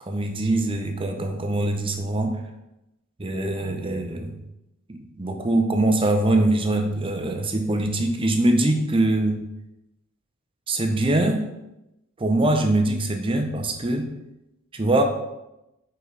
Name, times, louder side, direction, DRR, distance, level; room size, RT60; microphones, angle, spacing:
voice 1, 0.0-2.4 3.2-4.3 4.9-9.4 10.7-11.4 12.2-14.1 14.7-15.0, right 1 dB, 25° right, 5 dB, 0.6 m, -23 dB
4.9 x 4.0 x 5.1 m, 0.92 s
head